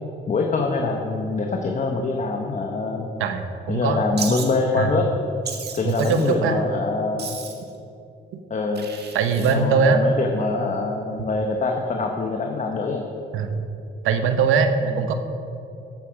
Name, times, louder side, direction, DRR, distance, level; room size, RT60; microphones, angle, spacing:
voice 1, 0.3-3.1 3.7-5.1 5.8-7.4 8.5-8.9 9.4-13.0 14.8-15.0, left 3 dB, 40° left, 2 dB, 1.1 m, -24 dB
voice 2, 3.2-4.0 4.8-4.9 5.8-6.6 9.1-10.0 13.3-13.6 14.0-15.1, right 6 dB, 85° right, 8 dB, 0.9 m, -21 dB
Wild animals, 4.2-4.5 5.4-6.3 7.2-7.7 8.7-9.5, right 6 dB, 55° right, 1.6 m, -34 dB
14.0 x 8.6 x 5.1 m, 2.8 s
cardioid pair, 90°, 20 cm